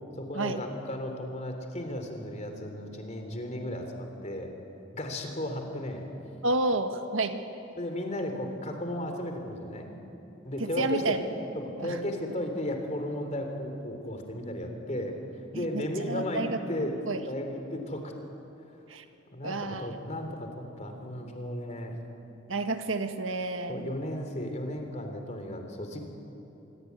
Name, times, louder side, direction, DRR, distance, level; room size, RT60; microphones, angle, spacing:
voice 1, 0.2-4.5 4.9-6.1 7.8-9.9 10.4-11.2 11.6-15.1 15.5-18.1 19.3-22.0 23.7-26.0, left 1 dB, 35° left, 5 dB, 3.5 m, -35 dB
voice 2, 6.4-7.4 10.6-11.2 11.8-12.0 15.5-16.6 17.1-17.2 18.9-19.0 19.4-20.0 22.5-23.8, right 2 dB, 80° right, 7 dB, 1.7 m, -30 dB
25.5 x 23.5 x 9.6 m, 2.9 s
head